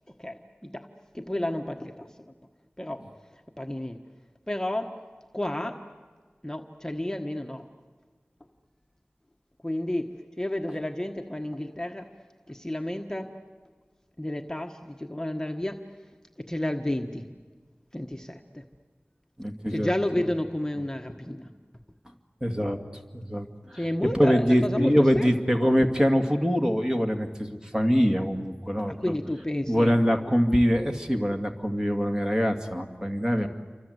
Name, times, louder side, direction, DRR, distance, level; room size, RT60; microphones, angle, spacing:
voice 1, 0.2-0.9 1.1-2.3 2.8-3.0 3.6-4.0 4.5-4.9 5.3-5.8 6.4-7.6 9.6-10.1 10.4-12.1 12.5-13.3 14.2-15.8 16.4-17.2 17.9-18.6 19.7-21.5 23.8-25.3 28.9-29.9, left 1 dB, 15° left, 3 dB, 1.4 m, -31 dB
voice 2, 19.4-19.9 22.4-22.8 23.1-23.9 24.1-29.1 29.7-33.5, equal, 15° right, 4 dB, 2.3 m, -24 dB
29.0 x 25.0 x 8.1 m, 1.5 s
wide cardioid pair, 60°, 4 cm